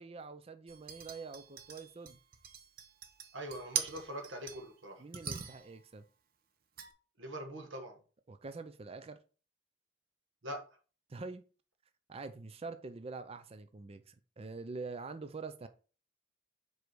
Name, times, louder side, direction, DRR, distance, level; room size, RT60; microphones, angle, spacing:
voice 1, 0.0-2.2 5.0-6.0 8.3-9.2 11.1-11.4 12.1-15.7, right 4 dB, 30° right, 0.5 m, -45 dB
sound 1, 0.7-4.7 5.1-5.8 6.8-6.9, right 7 dB, 50° right, 0.8 m, -42 dB
voice 2, 3.3-5.0 7.2-8.0 10.4-10.6, right 1 dB, 80° right, 1.2 m, -43 dB
5.1 x 4.7 x 4.6 m
head